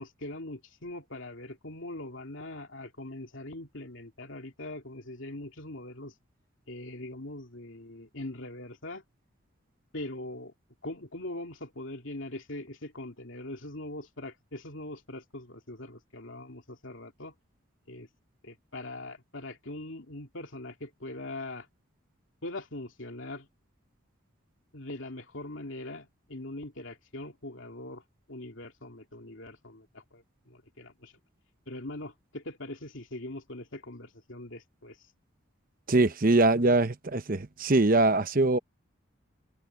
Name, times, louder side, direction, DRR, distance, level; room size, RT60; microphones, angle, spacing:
voice 1, 0.0-6.1 6.7-9.0 9.9-10.5 10.8-17.3 17.9-18.1 18.4-21.7 22.4-23.5 24.7-28.0 28.3-31.1 31.7-35.0, left 1 dB, 70° left, 2.9 m, -41 dB
voice 2, 35.9-38.6, right 2 dB, 45° right, 0.9 m, -23 dB
head